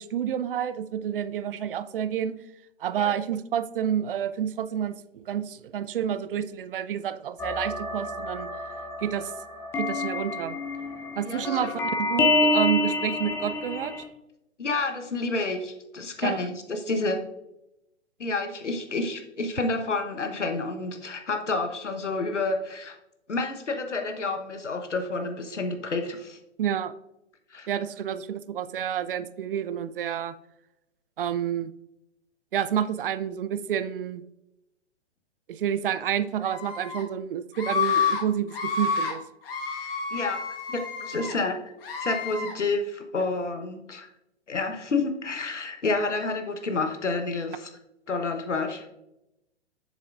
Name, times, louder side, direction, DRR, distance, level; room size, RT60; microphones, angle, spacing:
voice 1, 0.0-2.4 2.8-8.5 9.0-9.3 9.8-10.6 11.2-13.9 16.2-16.4 26.6-26.9 27.7-30.3 31.2-31.7 32.5-34.2 35.5-39.2, right 9 dB, 50° right, 14 dB, 0.5 m, -29 dB
sound 1, 7.4-14.0, left 2 dB, 5° left, 0.5 m, -28 dB
voice 2, 11.2-11.7 14.6-17.2 18.2-23.0 23.3-26.4 27.5-27.7 40.1-40.4 40.7-41.6 42.0-44.1 44.5-47.7 48.1-48.9, left 3 dB, 80° left, 5 dB, 1.1 m, -29 dB
Screaming, 36.4-37.0 37.5-38.2 38.5-39.1 39.5-41.3 41.8-42.5, left 5 dB, 50° left, 1.6 m, -29 dB
7.4 x 6.9 x 2.5 m, 0.87 s
figure-of-eight pair, 115°, 35 cm